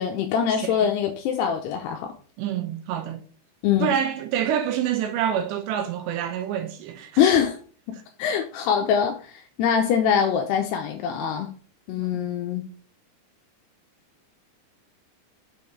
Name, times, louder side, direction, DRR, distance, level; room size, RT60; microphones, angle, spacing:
voice 1, 0.0-2.1 3.6-3.9 7.2-7.6 7.9-9.2 9.6-11.5 11.9-12.6, left 8 dB, 80° left, 2.6 m, -23 dB
voice 2, 2.4-3.2 3.8-7.3 8.8-8.9, right 9 dB, 85° right, 2.9 m, -27 dB
7.0 x 5.3 x 4.5 m
omnidirectional pair, 5.1 m